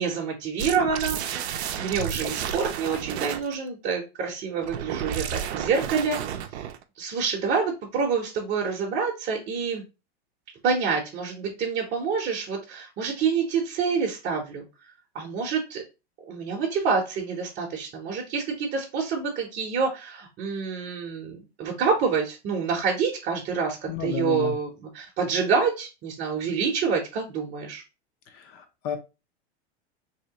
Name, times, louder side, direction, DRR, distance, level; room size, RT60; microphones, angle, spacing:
voice 1, 0.0-6.4 7.0-9.8 10.6-14.6 15.1-15.8 16.3-27.8, right 5 dB, 30° right, -1 dB, 0.8 m, -27 dB
sound 1, 0.6-3.5 4.6-6.8, right 9 dB, 75° right, 0.5 m, -32 dB
voice 2, 23.9-24.5 28.3-29.0, left 9 dB, 40° left, 6 dB, 0.8 m, -31 dB
3.0 x 2.8 x 2.8 m, 0.28 s
hypercardioid pair, 115°, 33 cm